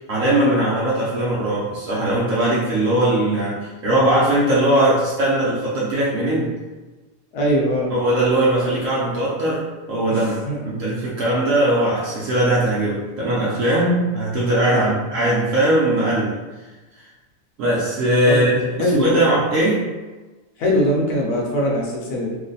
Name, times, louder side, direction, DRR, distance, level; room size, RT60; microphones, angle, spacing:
voice 1, 0.0-6.6 7.9-16.4 17.6-19.9, right 1 dB, 65° right, -6 dB, 0.8 m, -20 dB
voice 2, 7.3-7.9 10.1-10.6 14.7-14.9 18.3-18.5 18.8-19.2 20.6-22.4, equal, 70° left, -2 dB, 1.2 m, -21 dB
3.0 x 2.1 x 3.9 m, 1.2 s
omnidirectional pair, 1.8 m